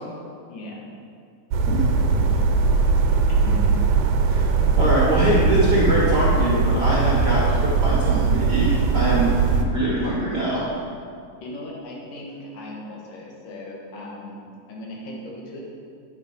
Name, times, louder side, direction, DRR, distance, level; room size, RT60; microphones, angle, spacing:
voice 1, 0.5-0.9 1.9-2.3 3.3-3.7 11.4-14.3 14.7-15.7, left 1 dB, 70° left, -3 dB, 3.2 m, -38 dB
sound 1, 1.5-9.6, right 4 dB, 90° right, 2.6 m, -20 dB
voice 2, 4.8-10.6, right 1 dB, 45° right, -7 dB, 1.5 m, -23 dB
9.5 x 7.2 x 5.4 m, 2.3 s
omnidirectional pair, 4.0 m